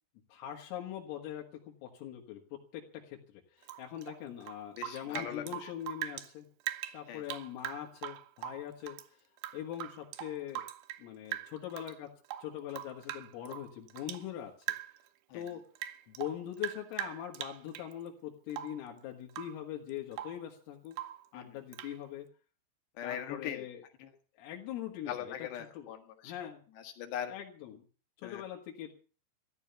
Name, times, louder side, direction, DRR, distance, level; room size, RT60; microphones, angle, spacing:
voice 1, 0.3-6.5 6.9-9.2 9.5-10.7 11.0-12.1 12.4-14.7 15.3-15.7 16.1-21.0 21.3-22.3 23.0-23.8 24.4-25.3 25.8-25.9 26.2-26.6 27.3-27.8 28.2-28.9, left 11 dB, 85° left, 0 dB, 4.4 m, -42 dB
Rain / Drip, 3.6-6.3 6.6-9.1 9.4-11.1 11.3-12.0 12.3-14.3 14.6-15.1 15.4-17.9 18.5-18.9 19.3-19.6 19.9-20.5 20.9-21.3 21.7-22.0, right 13 dB, 75° right, 2.5 m, -42 dB
voice 2, 4.8-5.7 7.1-7.2 15.3-15.4 21.3-21.5 23.0-23.6 24.0-24.1 25.1-26.3 26.8-27.3 28.2-28.4, left 9 dB, 65° left, 6 dB, 3.5 m, -40 dB
15.0 x 12.0 x 6.9 m, 0.40 s
omnidirectional pair, 5.8 m